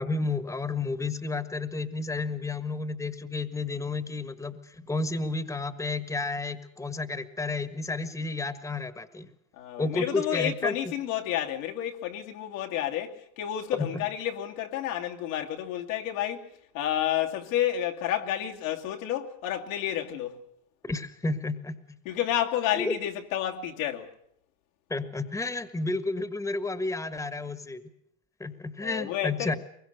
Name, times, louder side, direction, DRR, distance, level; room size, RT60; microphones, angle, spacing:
voice 1, 0.0-9.3 9.8-10.7 13.8-14.0 20.8-22.0 22.7-22.9 24.9-27.8 28.4-29.6, left 3 dB, 5° left, 1.6 m, -31 dB
voice 2, 9.5-20.4 22.0-24.1 28.8-29.6, left 11 dB, 75° left, 2.5 m, -30 dB
23.0 x 22.0 x 6.7 m
supercardioid pair, 105°, 40 cm